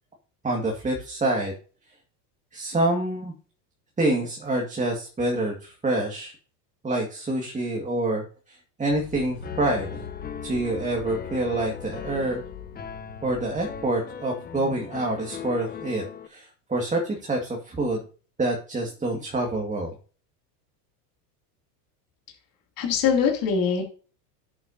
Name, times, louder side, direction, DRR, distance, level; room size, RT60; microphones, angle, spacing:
voice 1, 0.4-1.5 2.5-3.3 4.0-6.3 6.8-10.1 10.4-12.4 13.2-18.0 18.4-19.9, right 2 dB, 15° right, 1 dB, 2.0 m, -27 dB
sound 1, 8.9-13.9, left 6 dB, 75° left, 3.0 m, -43 dB
Piano, 9.4-16.3, left 7 dB, 20° left, 0.8 m, -38 dB
voice 2, 22.8-23.8, left 6 dB, 45° left, 1 dB, 2.8 m, -22 dB
11.0 x 8.0 x 2.8 m, 0.39 s
hypercardioid pair, 105°, 49 cm